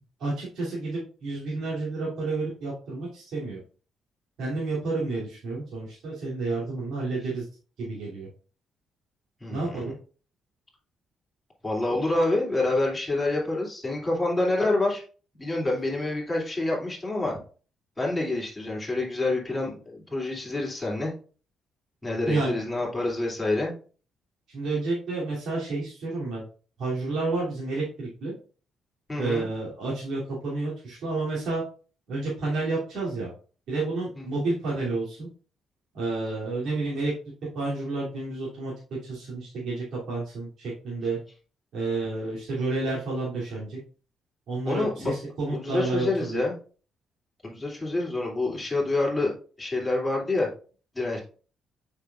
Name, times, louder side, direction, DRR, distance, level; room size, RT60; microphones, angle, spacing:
voice 1, 0.2-3.6 4.4-7.4 7.8-8.3 9.5-9.9 22.3-22.6 24.5-26.4 26.8-28.3 29.2-31.6 32.1-33.3 33.7-35.3 35.9-37.1 37.5-38.7 39.0-41.2 41.7-43.8 44.5-46.4, right 3 dB, 75° right, -7 dB, 3.0 m, -30 dB
voice 2, 9.4-9.9 11.6-15.0 15.4-17.4 18.0-21.1 22.0-23.7 29.1-29.5 34.1-34.2 44.6-45.1 45.5-46.5 47.4-49.3 49.6-50.5 50.9-51.2, left 2 dB, 15° left, -3 dB, 2.9 m, -27 dB
6.8 x 5.8 x 2.5 m, 0.39 s
cardioid pair, 75°, 0 cm